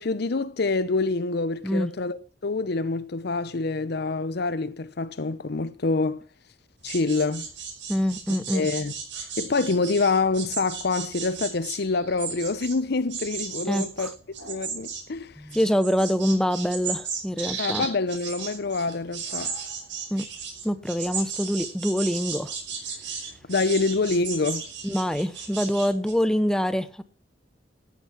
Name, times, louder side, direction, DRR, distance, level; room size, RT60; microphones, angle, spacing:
voice 1, 0.0-6.2 6.8-7.5 8.5-8.9 9.4-14.1 14.5-15.3 17.6-19.5 23.5-24.7, left 3 dB, 60° left, 0.7 m, -26 dB
sound 1, 6.8-12.8 13.1-26.1, right 6 dB, 85° right, 5.4 m, -35 dB
voice 2, 7.9-8.7 13.7-14.1 15.4-17.9 20.1-20.3 20.6-22.5 24.8-27.0, equal, 5° left, 0.7 m, -25 dB
14.0 x 8.4 x 6.0 m
head